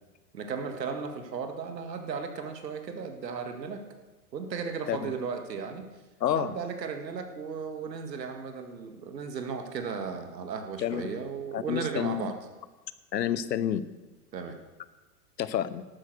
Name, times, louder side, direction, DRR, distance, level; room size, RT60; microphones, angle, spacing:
voice 1, 0.3-3.8 4.3-5.9 6.4-12.3 14.3-14.6, right 5 dB, 85° right, 6 dB, 1.9 m, -35 dB
voice 2, 6.2-6.5 10.8-11.1 11.5-12.3 13.1-13.8 15.4-15.8, left 10 dB, 85° left, 16 dB, 0.9 m, -29 dB
12.0 x 9.1 x 6.5 m, 1.2 s
hypercardioid pair, 105°, 48 cm